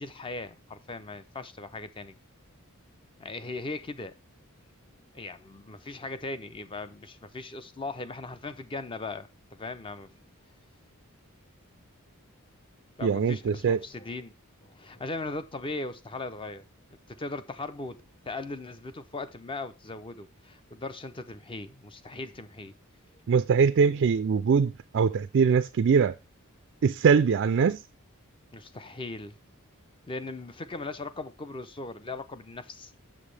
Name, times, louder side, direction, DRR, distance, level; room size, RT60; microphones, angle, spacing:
voice 1, 0.0-2.1 3.2-4.1 5.1-10.1 13.0-16.6 17.1-18.0 18.3-22.7 28.5-29.4 30.1-32.9, left 3 dB, 25° left, 0.6 m, -38 dB
voice 2, 13.0-13.8 23.3-26.1 26.8-27.8, right 6 dB, 55° right, 0.3 m, -22 dB
7.3 x 6.8 x 3.3 m
head